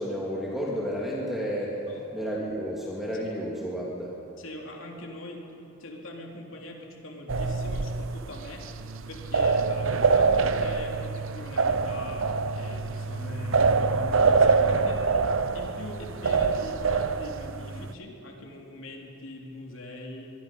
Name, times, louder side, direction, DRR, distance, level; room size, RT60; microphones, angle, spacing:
voice 1, 0.0-1.8 2.1-4.2, equal, ahead, -5 dB, 2.6 m, -31 dB
voice 2, 1.9-2.2 3.2-3.3 4.4-8.7 9.1-15.0 15.5-20.3, left 1 dB, 65° left, 0 dB, 3.2 m, -42 dB
sound 1, 7.3-17.9, right 4 dB, 65° right, 0.7 m, -25 dB
24.0 x 22.0 x 5.4 m, 2.8 s
head